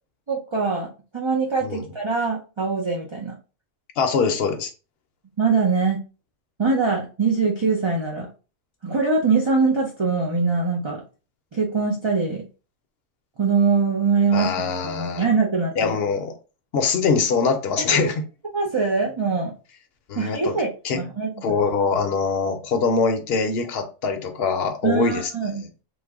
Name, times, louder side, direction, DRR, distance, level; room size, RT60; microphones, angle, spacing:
voice 1, 0.3-3.3 5.4-6.0 6.6-8.3 8.8-11.0 11.5-12.4 13.4-16.0 17.8-18.0 18.5-19.5 20.2-21.3 24.8-25.6, right 4 dB, 40° right, -2 dB, 0.4 m, -23 dB
voice 2, 4.0-4.7 14.3-15.2 15.8-16.3 16.7-18.2 20.1-20.6 20.8-21.0 21.4-25.3, left 5 dB, 60° left, 5 dB, 0.8 m, -23 dB
3.1 x 2.1 x 3.5 m, 0.33 s
omnidirectional pair, 1.3 m